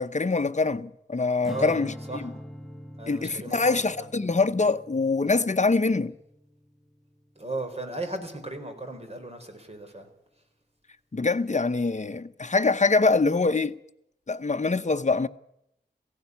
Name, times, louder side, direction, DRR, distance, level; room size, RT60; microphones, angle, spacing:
voice 1, 0.0-1.9 3.1-6.1 11.1-13.7 14.3-15.3, left 3 dB, 40° left, 0.8 m, -24 dB
Strum, 1.4-7.8, equal, ahead, 1.2 m, -44 dB
voice 2, 1.5-1.8 2.1-2.3 3.0-4.1 7.4-10.1, right 2 dB, 35° right, 4.2 m, -36 dB
17.5 x 16.0 x 9.6 m
wide cardioid pair, 85°, 18 cm